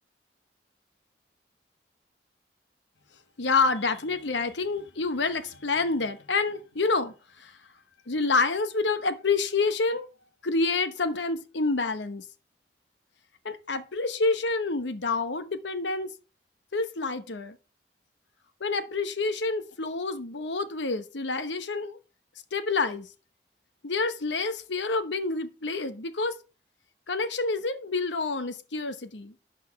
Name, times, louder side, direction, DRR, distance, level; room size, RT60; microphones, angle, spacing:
voice 1, 3.4-7.5 8.1-10.1 10.4-12.2 13.4-16.1 16.7-17.6 18.6-22.0 22.5-23.1 23.8-26.4 27.1-29.3, left 3 dB, 90° left, 1.0 m, -28 dB
11.5 x 4.2 x 5.8 m
head